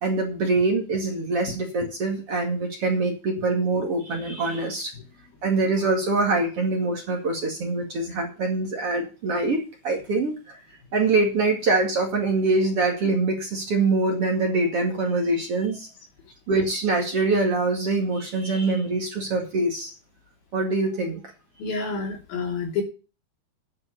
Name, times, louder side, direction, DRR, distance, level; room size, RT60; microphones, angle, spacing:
voice 1, 0.0-4.9 5.4-10.6 10.9-15.9 16.5-19.9 20.5-21.2, right 3 dB, 45° right, 2 dB, 2.7 m, -24 dB
voice 2, 21.6-22.8, left 4 dB, 70° left, 1 dB, 5.0 m, -28 dB
10.0 x 6.2 x 8.3 m, 0.32 s
omnidirectional pair, 4.4 m